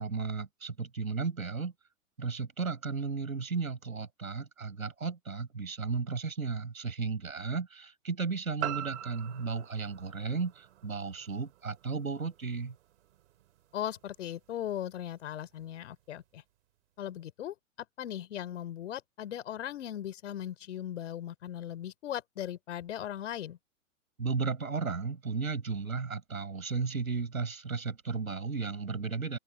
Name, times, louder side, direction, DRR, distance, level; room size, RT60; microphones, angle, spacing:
voice 1, 0.0-1.7 2.2-12.7 24.2-29.4, right 4 dB, 80° right, 7.5 m, -34 dB
sound 1, 8.6-12.7 13.1-13.2, right 11 dB, 55° right, 4.4 m, -42 dB
voice 2, 13.7-16.4 17.0-17.5 18.0-23.6, left 11 dB, 60° left, 4.0 m, -38 dB
figure-of-eight pair, 110°, 41 cm